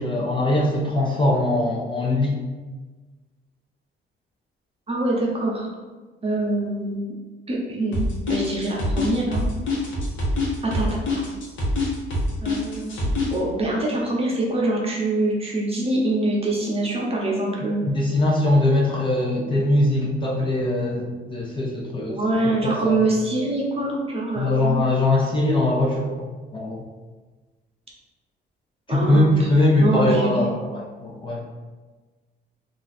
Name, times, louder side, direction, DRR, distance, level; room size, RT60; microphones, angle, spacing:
voice 1, 0.0-2.4 17.8-22.2 22.6-23.0 24.4-26.3 26.5-26.8 28.9-31.5, left 1 dB, 25° left, -3 dB, 0.6 m, -21 dB
voice 2, 4.9-5.7 6.2-7.1 7.5-8.0 8.3-9.4 10.6-11.2 12.4-17.8 22.1-24.8 28.9-29.5 29.8-30.5, right 2 dB, 30° right, -3 dB, 0.8 m, -24 dB
sound 1, 7.9-13.4, left 2 dB, 75° left, 0.9 m, -25 dB
2.5 x 2.3 x 4.0 m, 1.3 s
cardioid pair, 90°, 20 cm